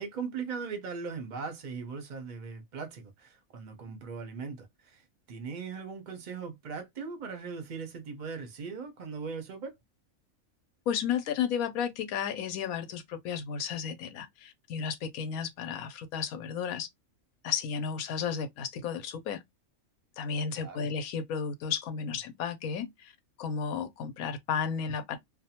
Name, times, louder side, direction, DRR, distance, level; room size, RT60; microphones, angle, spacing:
voice 1, 0.0-5.0 5.3-9.8 20.5-20.9, right 5 dB, 45° right, 0.6 m, -39 dB
voice 2, 10.9-16.9 17.4-19.4 20.2-23.1 23.4-25.2, left 7 dB, 80° left, 1.0 m, -33 dB
2.6 x 2.2 x 2.7 m
omnidirectional pair, 1.5 m